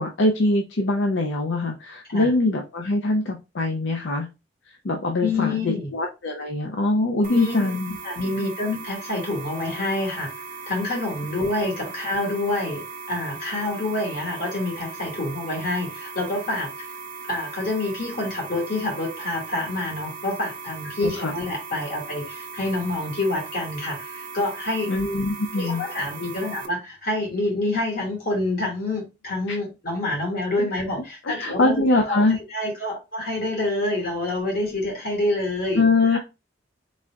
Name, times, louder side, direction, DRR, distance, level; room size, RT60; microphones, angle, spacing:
voice 1, 0.0-4.3 4.8-8.0 21.0-21.3 24.9-25.8 29.5-29.6 30.6-30.7 31.2-32.4 35.8-36.2, left 2 dB, 80° left, 0.6 m, -23 dB
voice 2, 5.2-5.9 7.3-7.6 8.0-10.3 10.7-16.7 17.3-24.9 25.6-35.8 36.1-36.2, left 2 dB, 55° left, 2.3 m, -27 dB
sound 1, 7.2-26.7, right 5 dB, 50° right, 0.7 m, -38 dB
4.2 x 3.4 x 2.4 m
head